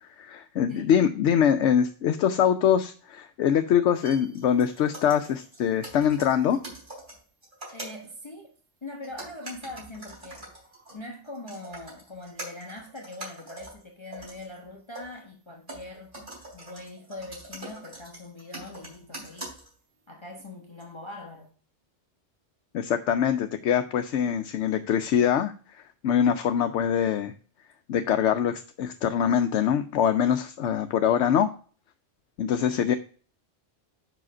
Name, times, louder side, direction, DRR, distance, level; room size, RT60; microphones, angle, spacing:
voice 1, 0.0-6.6 22.7-27.3 27.9-31.5 32.4-32.9, left 8 dB, 80° left, 0.9 m, -24 dB
sound 1, 3.9-8.1 9.0-15.2 15.7-19.9 20.8-20.9, right 1 dB, 45° right, 3.4 m, -44 dB
voice 2, 7.7-8.5 8.8-10.5 10.9-16.1 16.5-19.5 20.1-21.5, left 2 dB, 25° left, 1.0 m, -42 dB
5.7 x 4.9 x 6.0 m
omnidirectional pair, 1.2 m